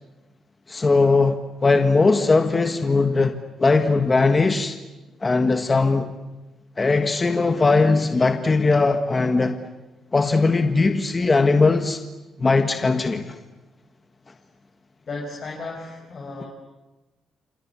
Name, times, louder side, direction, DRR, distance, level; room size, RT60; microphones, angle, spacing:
voice 1, 0.7-4.8 5.2-6.1 6.8-9.6 10.1-12.0 12.4-13.3, left 3 dB, 25° left, 7 dB, 1.5 m, -19 dB
voice 2, 15.1-16.5, left 3 dB, 45° left, -1 dB, 5.7 m, -34 dB
29.0 x 26.5 x 7.1 m, 1.1 s
cardioid pair, 120°, 0 cm